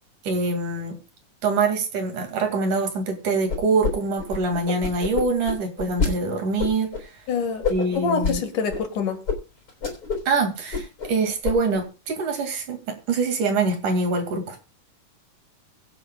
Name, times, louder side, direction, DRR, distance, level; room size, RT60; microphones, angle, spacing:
voice 1, 0.2-0.9 1.4-7.1 7.7-8.4 10.3-14.6, right 3 dB, 65° right, 4 dB, 3.8 m, -24 dB
sound 1, 3.5-6.1 6.6-7.0 7.6-8.4 8.7-8.8 9.3-9.4 9.7-10.3 10.6-11.1 11.4-11.8, left 5 dB, 30° left, 3.7 m, -26 dB
voice 2, 7.3-7.7 8.0-9.2, left 5 dB, 70° left, 6 dB, 3.3 m, -25 dB
23.5 x 7.9 x 2.4 m, 0.29 s
omnidirectional pair, 3.9 m